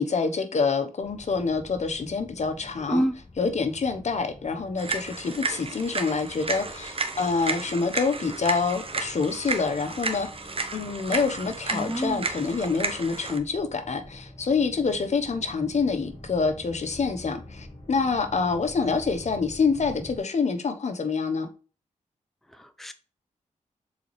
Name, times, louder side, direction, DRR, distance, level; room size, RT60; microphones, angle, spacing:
voice 1, 0.0-3.1 3.4-21.5, left 4 dB, 60° left, 1.1 m, -27 dB
sound 1, 1.0-20.2, left 1 dB, 35° left, 3.0 m, -47 dB
sound 2, 4.8-13.4, right 3 dB, 45° right, 1.1 m, -32 dB
voice 2, 11.7-12.3 22.6-22.9, right 1 dB, ahead, 0.7 m, -27 dB
6.8 x 4.2 x 3.3 m
cardioid pair, 80°, 13 cm